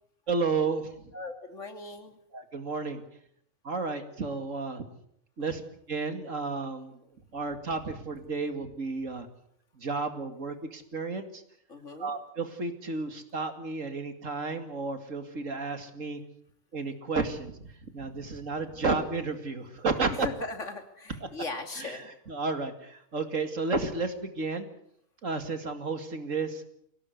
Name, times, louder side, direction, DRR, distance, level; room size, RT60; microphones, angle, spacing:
voice 1, 0.3-0.9 2.3-3.0 3.6-4.8 5.4-5.6 5.9-7.0 7.3-9.3 9.8-11.4 12.0-16.2 16.7-17.5 17.9-20.3 21.8-22.0 22.3-24.7 25.2-26.6, right 3 dB, 70° right, 8 dB, 2.7 m, -32 dB
voice 2, 1.1-2.2 11.7-12.1 20.1-22.0, left 3 dB, 65° left, 6 dB, 3.0 m, -39 dB
23.5 x 18.0 x 8.3 m, 0.70 s
omnidirectional pair, 1.4 m